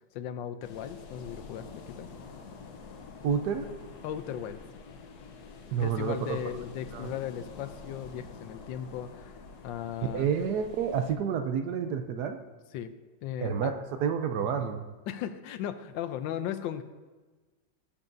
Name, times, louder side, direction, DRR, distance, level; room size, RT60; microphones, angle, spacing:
voice 1, 0.1-2.1 4.0-4.6 5.8-9.4 9.6-10.3 12.7-12.9 13.2-13.7 15.1-16.8, left 10 dB, 85° left, 10 dB, 1.3 m, -37 dB
sound 1, 0.6-11.1, left 4 dB, 65° left, 1.3 m, -47 dB
voice 2, 3.2-3.7 5.7-6.4 6.9-7.1 10.1-12.4 13.4-14.8, right 7 dB, 70° right, 7 dB, 1.1 m, -29 dB
18.0 x 7.2 x 2.6 m, 1.3 s
omnidirectional pair, 2.0 m